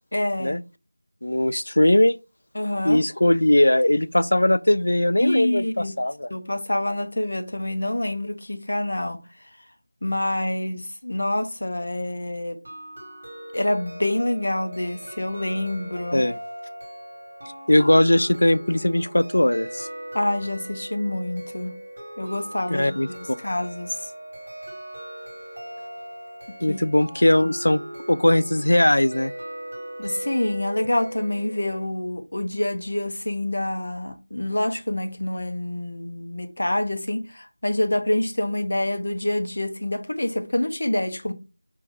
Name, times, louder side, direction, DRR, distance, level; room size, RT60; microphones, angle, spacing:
voice 1, 0.1-0.6 2.5-3.0 5.2-5.9 6.3-9.2 10.0-12.6 13.5-16.3 20.1-21.7 22.2-23.9 26.5-26.8 27.4-27.5 30.0-41.3, left 1 dB, 55° left, 0.7 m, -26 dB
voice 2, 1.2-2.2 2.8-6.3 16.1-16.4 17.7-19.9 22.7-23.1 26.6-27.8 28.1-29.3, left 1 dB, 85° left, 0.4 m, -19 dB
sound 1, 12.6-31.8, right 1 dB, 50° right, 1.3 m, -39 dB
4.4 x 2.6 x 3.5 m
figure-of-eight pair, 180°, 0 cm